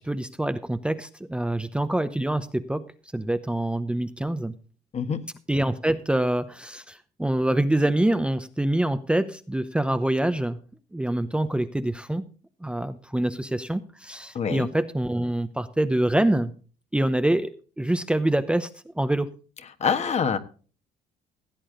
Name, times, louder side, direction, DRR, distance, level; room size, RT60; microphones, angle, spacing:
voice 1, 0.0-2.8 3.1-4.5 5.5-10.6 10.9-12.2 12.6-16.5 16.9-18.7 19.0-19.3, right 1 dB, 5° right, 0.8 m, -25 dB
voice 2, 4.9-5.3 14.3-14.7 19.8-20.4, left 6 dB, 40° left, 1.4 m, -25 dB
16.5 x 8.6 x 3.8 m
cardioid pair, 110°, 17 cm